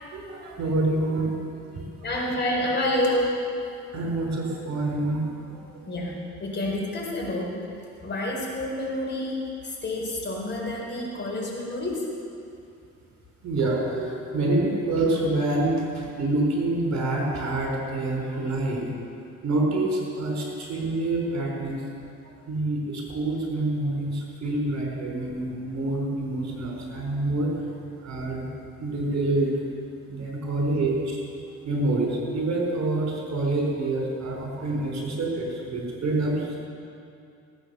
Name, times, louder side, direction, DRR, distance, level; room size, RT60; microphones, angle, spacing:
voice 1, 0.0-1.4 1.7-1.8 2.1-2.2 3.9-5.9 13.4-19.0 19.4-21.8 22.5-27.5 28.0-28.5 28.8-29.5 30.1-31.2 31.6-36.6, right 2 dB, 60° right, -1 dB, 4.2 m, -27 dB
voice 2, 2.0-3.5 5.9-7.6 8.0-12.1, left 1 dB, 35° left, -3 dB, 4.3 m, -28 dB
17.5 x 8.9 x 6.8 m, 2.5 s
cardioid pair, 90°, 30 cm